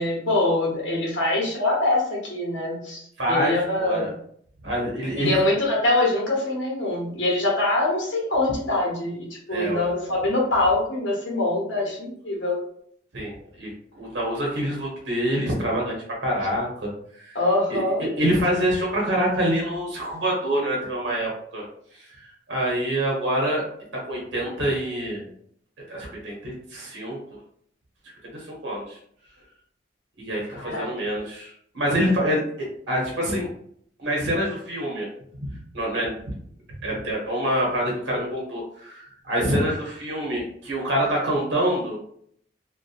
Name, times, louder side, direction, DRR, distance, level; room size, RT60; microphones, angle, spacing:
voice 1, 0.0-3.0 3.3-4.1 5.1-12.6 17.3-18.1 30.6-30.9, left 2 dB, 80° left, -3 dB, 0.9 m, -24 dB
voice 2, 3.2-4.1 4.6-5.3 9.5-9.8 13.1-13.7 14.0-16.9 17.2-17.4 17.7-21.7 22.0-23.6 23.9-25.3 25.9-27.2 28.3-29.0 30.2-33.5 34.0-35.1 35.4-35.5 35.7-36.4 36.8-42.0, equal, 70° right, -2 dB, 0.8 m, -26 dB
2.7 x 2.2 x 2.4 m, 0.64 s
head